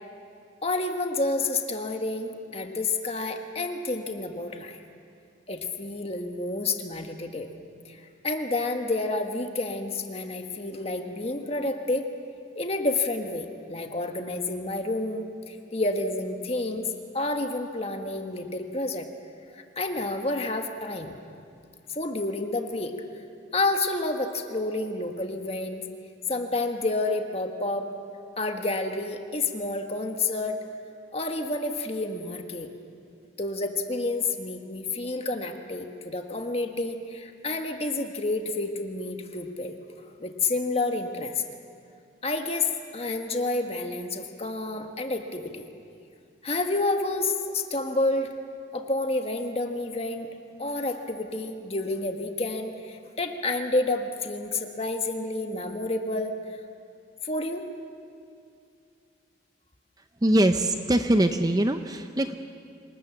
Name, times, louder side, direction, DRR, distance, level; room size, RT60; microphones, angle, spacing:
voice 1, 0.6-4.8 5.5-7.5 7.8-12.1 12.5-16.9 17.1-19.1 19.5-21.1 21.9-22.9 23.5-25.8 26.3-27.9 28.4-30.6 31.1-32.7 33.4-39.8 40.2-41.4 42.2-45.6 46.4-48.3 48.7-50.3 50.6-56.3 57.2-57.7, left 2 dB, 30° left, 5 dB, 1.5 m, -29 dB
voice 2, 60.2-62.3, right 1 dB, 20° right, 8 dB, 0.6 m, -22 dB
26.5 x 19.5 x 7.3 m, 2.4 s
head